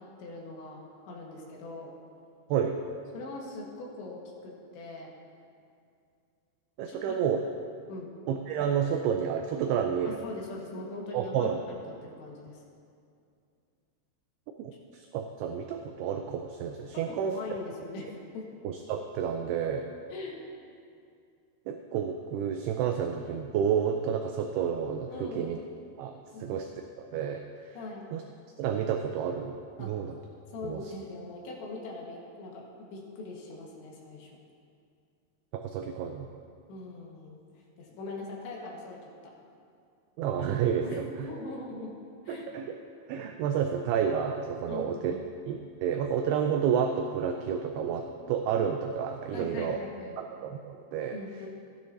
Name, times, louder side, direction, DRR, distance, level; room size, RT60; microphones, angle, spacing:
voice 1, 0.0-1.9 3.1-5.1 6.9-7.2 7.9-8.1 10.1-12.6 16.9-18.5 20.1-20.4 25.1-25.6 26.3-26.6 27.8-28.1 29.8-30.0 30.5-34.3 36.7-37.4 37.8-39.3 40.8-42.0 42.3-42.5 44.7-45.2 49.3-50.2 51.1-51.5, left 2 dB, 80° left, -2 dB, 3.8 m, -41 dB
voice 2, 2.5-2.8 6.8-7.4 8.3-10.2 11.1-11.6 14.6-17.3 18.6-19.9 21.7-25.6 26.0-26.1 26.4-26.7 27.0-27.8 28.1-28.2 28.6-30.2 30.6-30.8 35.5-36.3 40.2-41.3 42.3-42.7 43.1-45.2 45.5-49.8 50.2-51.2, right 8 dB, 85° right, 4 dB, 2.3 m, -30 dB
15.5 x 10.5 x 2.7 m, 2.4 s
omnidirectional pair, 5.1 m